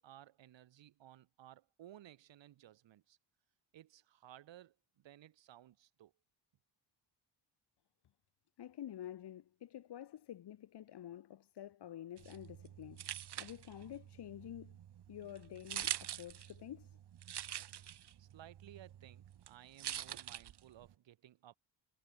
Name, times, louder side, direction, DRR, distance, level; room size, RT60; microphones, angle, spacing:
voice 1, 0.0-3.2 3.7-6.1 18.2-21.6, right 12 dB, 80° right, 6.8 m, -58 dB
voice 2, 8.6-14.8 15.1-17.0, left 11 dB, 65° left, 2.1 m, -49 dB
sound 1, 12.2-20.9, right 10 dB, 65° right, 2.7 m, -46 dB
cardioid pair, 105°, 44 cm